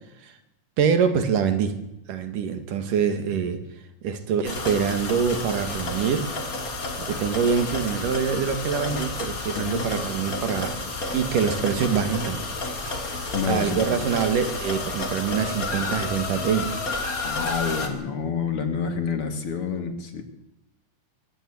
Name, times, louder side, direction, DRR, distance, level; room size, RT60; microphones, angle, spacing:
voice 1, 0.8-1.8 2.1-3.6 4.0-6.3 7.0-10.8 11.1-12.5 12.8-16.7, right 7 dB, 85° right, 9 dB, 3.5 m, -25 dB
sound 1, 4.4-17.9, left 3 dB, 30° left, 2.6 m, -31 dB
voice 2, 9.5-9.9 13.3-14.0 17.2-20.2, left 6 dB, 50° left, 7 dB, 2.4 m, -28 dB
23.0 x 15.0 x 8.5 m, 0.85 s
omnidirectional pair, 3.6 m